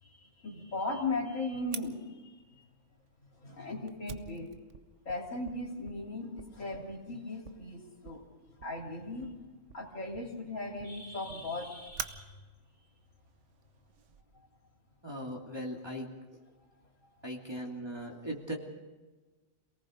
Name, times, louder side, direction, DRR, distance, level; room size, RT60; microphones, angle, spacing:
voice 1, 0.0-2.6 3.3-4.5 5.1-8.2 8.6-9.3 9.7-12.4 17.0-17.1, left 2 dB, 75° left, 0 dB, 3.7 m, -38 dB
Fire, 1.7-14.2, right 7 dB, 65° right, 1.2 m, -49 dB
voice 2, 15.0-16.4 17.2-18.6, equal, 20° right, -1 dB, 2.6 m, -39 dB
28.0 x 18.5 x 5.1 m, 1.3 s
omnidirectional pair, 1.4 m